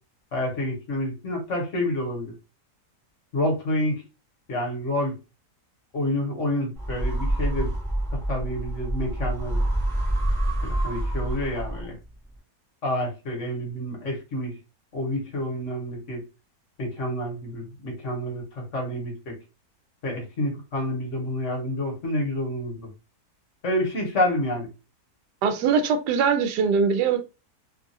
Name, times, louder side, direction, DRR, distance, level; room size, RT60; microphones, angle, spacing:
voice 1, 0.3-2.3 3.3-4.0 4.5-5.1 5.9-7.7 8.3-9.6 10.6-12.0 12.8-14.5 14.9-16.2 16.8-19.4 20.0-22.9 23.6-24.7, left 1 dB, 50° left, 1.3 m, -28 dB
sound 1, 6.8-12.1, right 1 dB, ahead, 0.7 m, -27 dB
voice 2, 25.4-27.2, right 6 dB, 85° right, 1.2 m, -22 dB
3.1 x 2.3 x 2.6 m
omnidirectional pair, 1.7 m